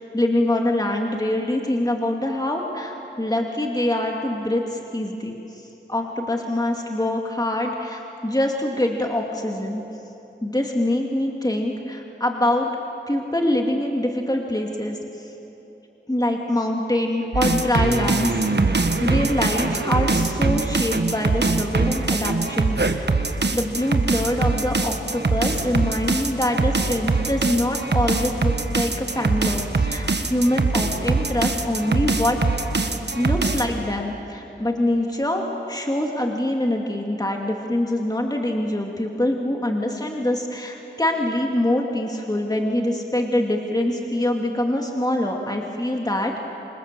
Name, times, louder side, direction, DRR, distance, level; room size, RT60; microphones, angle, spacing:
voice 1, 0.1-9.8 10.4-12.7 13.1-15.3 16.1-18.4 19.0-23.1 23.5-32.4 32.7-46.4, left 1 dB, 20° left, 1 dB, 2.3 m, -24 dB
sound 1, 17.3-33.8, right 3 dB, 65° right, 1.4 m, -23 dB
26.5 x 26.5 x 7.6 m, 3.0 s
wide cardioid pair, 55°, 19 cm